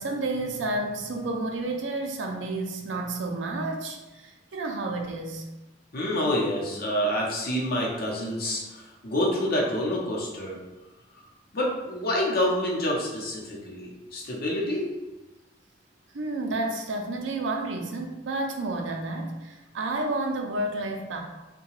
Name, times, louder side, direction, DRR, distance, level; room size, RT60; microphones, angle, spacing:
voice 1, 0.0-5.5 16.1-21.2, right 2 dB, 80° right, 2 dB, 0.4 m, -30 dB
voice 2, 5.9-10.6 11.5-14.8, left 1 dB, 55° left, -3 dB, 0.7 m, -27 dB
2.8 x 2.2 x 3.0 m, 1.1 s
head